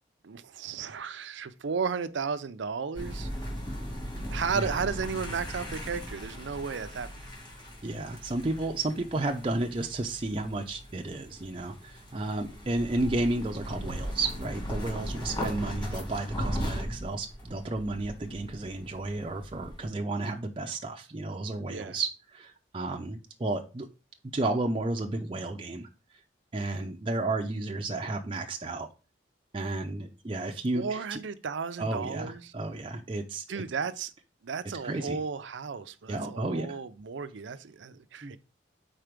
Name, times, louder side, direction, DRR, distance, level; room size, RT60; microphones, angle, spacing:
voice 1, 0.2-3.3 4.3-7.1 21.7-22.0 30.7-32.5 33.5-34.1 34.4-38.4, right 5 dB, 80° right, 0.5 m, -34 dB
sound 1, 2.9-19.9, equal, 25° left, 2.1 m, -38 dB
voice 2, 7.8-23.9 24.3-25.9 26.5-28.9 29.5-31.2 31.8-33.4 34.8-35.2 36.1-36.8 38.2-38.3, right 2 dB, 30° right, 0.5 m, -32 dB
4.5 x 4.1 x 5.1 m
head